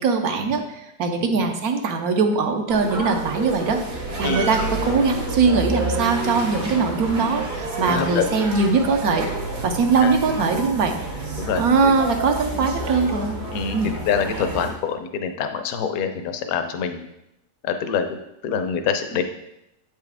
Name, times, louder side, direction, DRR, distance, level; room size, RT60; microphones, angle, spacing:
voice 1, 0.0-3.8 4.2-9.3 9.6-11.0 11.6-13.4 13.7-14.0, right 4 dB, 70° right, 5 dB, 1.1 m, -21 dB
sound 1, 2.7-14.7, right 2 dB, 85° right, 2.1 m, -29 dB
voice 2, 7.9-8.3 10.0-10.1 11.4-11.9 13.5-13.8 14.1-17.1 17.6-18.2 18.4-19.2, left 7 dB, 70° left, 7 dB, 1.1 m, -25 dB
8.3 x 4.8 x 3.4 m, 0.83 s
omnidirectional pair, 1.7 m